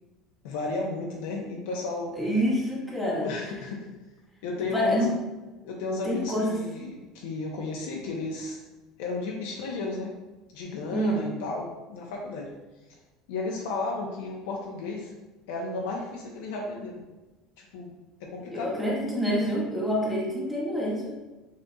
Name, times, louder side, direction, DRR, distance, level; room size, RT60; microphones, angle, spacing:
voice 1, 0.4-2.2 3.1-3.9 4.4-5.1 5.6-8.6 9.0-10.1 10.5-12.5 13.3-15.1 15.5-17.0 17.6-17.9 18.2-18.9, left 3 dB, 85° left, -1 dB, 0.7 m, -33 dB
voice 2, 2.1-3.3 4.7-5.2 6.0-6.6 10.9-11.3 18.5-21.1, equal, ahead, -5 dB, 0.8 m, -27 dB
6.4 x 2.6 x 2.3 m, 1.1 s
cardioid pair, 150°, 0 cm